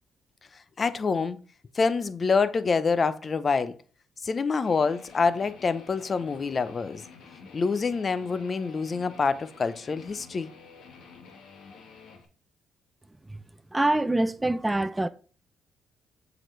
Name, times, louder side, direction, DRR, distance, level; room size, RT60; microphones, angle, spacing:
voice 1, 0.8-1.4 1.7-3.7 4.2-7.0 7.5-10.5, left 4 dB, 40° left, 0.6 m, -26 dB
Guitar, 4.6-12.2, left 5 dB, 75° left, 1.5 m, -50 dB
voice 2, 13.7-15.1, right 2 dB, 15° right, 0.6 m, -24 dB
7.5 x 4.9 x 3.3 m
cardioid pair, 90°, 0 cm